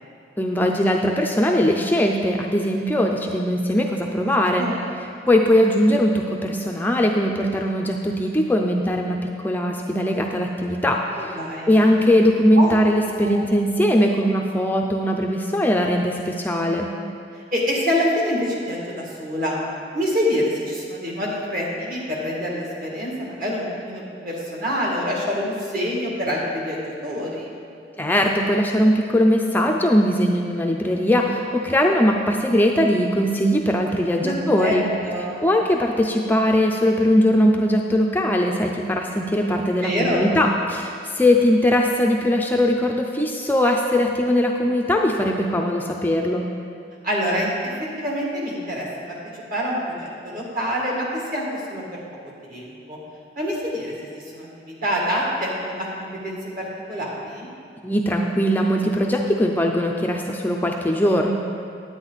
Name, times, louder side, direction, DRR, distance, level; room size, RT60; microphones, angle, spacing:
voice 1, 0.4-4.7 5.3-11.4 11.7-16.9 28.0-34.9 35.4-46.5 57.8-61.3, equal, 10° left, 1 dB, 0.4 m, -20 dB
voice 2, 4.2-4.8 11.2-11.9 12.6-12.7 13.1-13.5 17.5-19.6 19.9-27.5 34.2-35.5 39.8-40.2 47.0-47.5 48.0-48.9 49.5-52.0 52.4-53.0 53.4-57.5, equal, 50° right, -4 dB, 2.2 m, -26 dB
9.9 x 9.2 x 4.0 m, 2.3 s
head